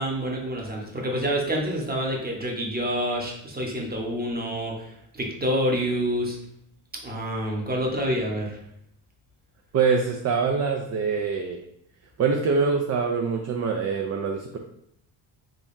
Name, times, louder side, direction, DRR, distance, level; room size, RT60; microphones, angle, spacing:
voice 1, 0.0-6.4 7.0-8.6, equal, 20° right, -1 dB, 1.0 m, -27 dB
voice 2, 9.7-11.6 12.2-14.6, right 5 dB, 35° right, 2 dB, 0.4 m, -24 dB
3.8 x 3.0 x 2.6 m, 0.74 s
cardioid pair, 70°, 48 cm